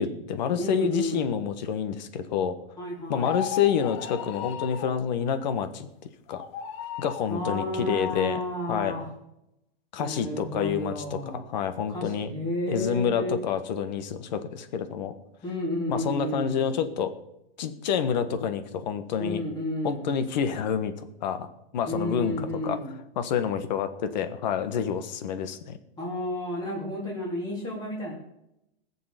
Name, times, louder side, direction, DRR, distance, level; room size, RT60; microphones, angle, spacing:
voice 1, 0.0-2.6 3.1-5.9 6.3-6.4 7.0-8.4 8.7-8.9 9.9-12.3 12.7-15.1 15.9-17.1 17.6-19.4 19.8-21.5 21.7-22.8 23.2-25.8, left 7 dB, 50° left, 10 dB, 1.4 m, -28 dB
voice 2, 0.6-1.4 2.8-3.4 7.3-9.1 10.0-11.4 11.9-13.3 15.4-16.7 19.2-20.1 21.9-22.9 26.0-28.1, left 1 dB, 15° left, -4 dB, 3.7 m, -31 dB
sound 1, 3.1-5.0 6.3-7.3, left 8 dB, 30° left, 0.7 m, -35 dB
20.0 x 7.1 x 5.1 m, 0.84 s
hypercardioid pair, 165°, 29 cm